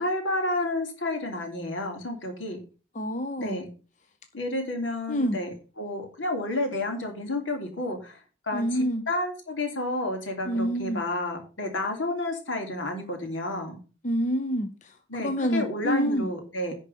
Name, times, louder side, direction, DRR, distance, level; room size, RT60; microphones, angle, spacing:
voice 1, 0.0-2.6 3.4-3.7 4.3-5.5 5.8-8.2 8.5-8.6 9.1-13.8 15.1-16.7, left 1 dB, 80° left, 4 dB, 3.2 m, -30 dB
voice 2, 2.9-3.6 5.1-5.4 8.5-9.0 10.5-11.0 14.0-16.3, equal, 40° left, 7 dB, 0.8 m, -27 dB
11.0 x 4.6 x 6.9 m, 0.35 s
head